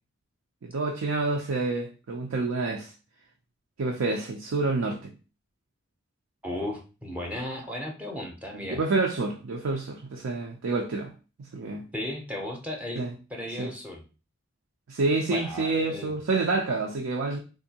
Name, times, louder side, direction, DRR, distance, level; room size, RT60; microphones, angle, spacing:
voice 1, 0.6-2.9 3.8-5.1 8.5-11.1 11.4-11.9 13.0-13.1 13.6-13.7 14.9-17.4, right 3 dB, 80° right, 0.5 m, -28 dB
voice 2, 6.4-8.8 11.9-13.0 13.3-14.0 15.3-16.1, left 1 dB, 5° right, 0.5 m, -35 dB
3.7 x 2.6 x 2.8 m
head